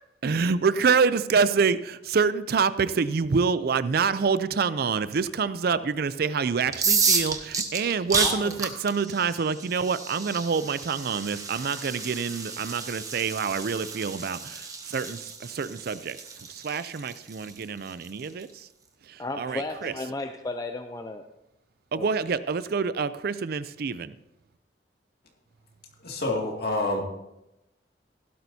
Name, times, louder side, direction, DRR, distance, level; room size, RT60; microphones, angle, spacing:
voice 1, 0.2-16.2 16.5-18.7 19.1-19.9 21.9-24.1, right 5 dB, 55° right, 15 dB, 0.4 m, -26 dB
sound 1, 6.7-18.4, right 4 dB, 20° right, 1.1 m, -31 dB
voice 2, 8.2-8.5 19.2-21.2 21.9-22.1, left 2 dB, 20° left, 6 dB, 0.5 m, -34 dB
voice 3, 26.0-27.0, left 2 dB, 55° left, 0 dB, 2.4 m, -27 dB
16.5 x 12.0 x 2.8 m, 0.92 s
head